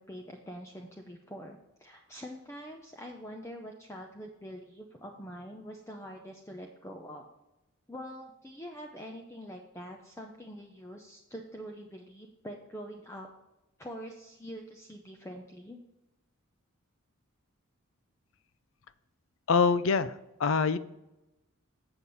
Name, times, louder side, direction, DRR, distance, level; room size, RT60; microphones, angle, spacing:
voice 1, 0.0-7.2 7.9-13.3 13.8-15.8, equal, 15° left, 2 dB, 0.6 m, -45 dB
voice 2, 19.5-20.1 20.4-20.8, left 5 dB, 60° left, 14 dB, 0.4 m, -24 dB
7.7 x 7.3 x 4.0 m, 0.95 s
head